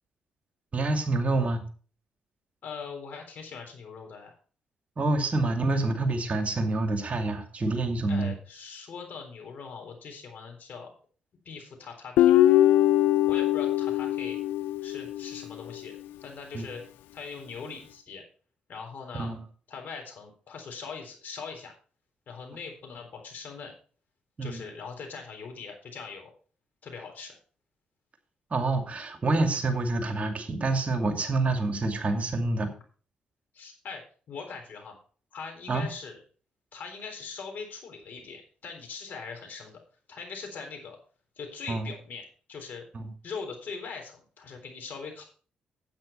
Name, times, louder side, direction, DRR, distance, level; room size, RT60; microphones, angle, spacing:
voice 1, 0.7-1.6 5.0-8.3 16.5-16.6 19.2-19.4 24.4-24.6 28.5-32.7 35.7-35.9 41.7-41.9 42.9-43.1, right 2 dB, 40° right, 6 dB, 2.4 m, -27 dB
voice 2, 2.6-4.4 8.1-10.9 11.5-12.4 13.3-14.4 14.8-15.9 16.2-16.8 17.1-18.2 18.7-19.3 19.7-21.7 22.3-23.7 24.4-26.3 26.8-27.4 33.5-34.0 34.3-35.0 35.3-36.2 36.7-39.8 40.1-41.0 41.4-42.8 43.2-45.2, left 5 dB, 60° left, 3 dB, 3.8 m, -41 dB
Guitar, 12.2-15.5, left 13 dB, 75° left, 0.4 m, -22 dB
9.6 x 8.6 x 4.3 m, 0.40 s
hypercardioid pair, 45°, 3 cm